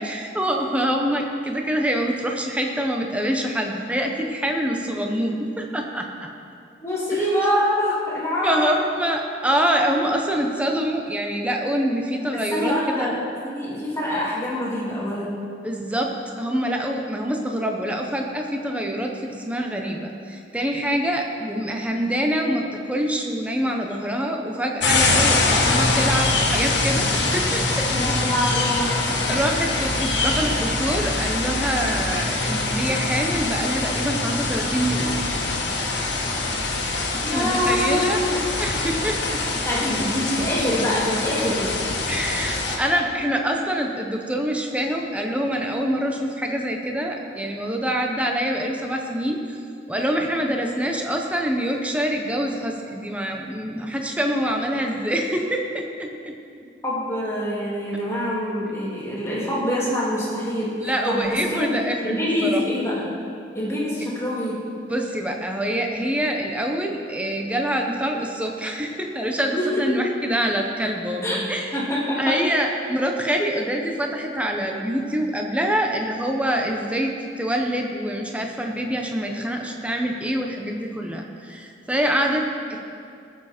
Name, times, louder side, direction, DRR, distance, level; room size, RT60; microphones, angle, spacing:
voice 1, 0.0-6.1 7.1-7.2 8.4-13.1 15.6-16.1 16.4-27.9 28.2-28.3 29.3-35.2 37.3-38.2 38.6-39.4 39.8-39.9 42.1-49.6 49.9-56.1 60.8-62.2 62.4-62.6 64.9-71.7 72.2-82.8, equal, 5° right, 1 dB, 1.0 m, -25 dB
voice 2, 6.8-8.8 12.3-13.2 13.5-15.4 27.9-29.0 37.2-38.4 39.6-41.7 56.8-61.8 62.0-63.2 63.5-64.6 69.5-69.9 71.2-71.4 71.7-72.4, equal, 15° left, -7 dB, 2.7 m, -25 dB
sound 1, 24.8-42.8, left 2 dB, 70° left, 1.8 m, -24 dB
19.5 x 7.4 x 4.5 m, 2.4 s
head